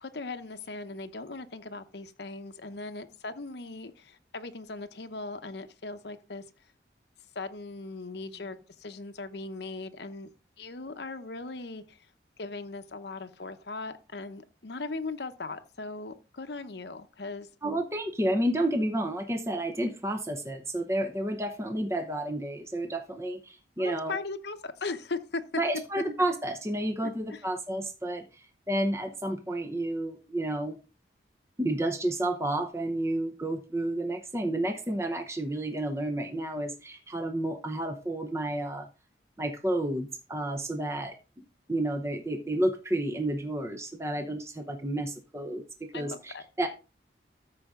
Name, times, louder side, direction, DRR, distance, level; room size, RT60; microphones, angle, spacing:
voice 1, 0.0-6.5 7.3-10.3 10.6-12.1 12.4-17.5 23.8-25.4 27.0-27.4 45.9-46.4, left 3 dB, 65° left, 0.8 m, -39 dB
voice 2, 17.6-24.2 25.5-30.8 31.6-38.9 39.4-41.2 41.7-46.7, right 1 dB, 15° right, 0.8 m, -31 dB
13.5 x 5.0 x 3.7 m
head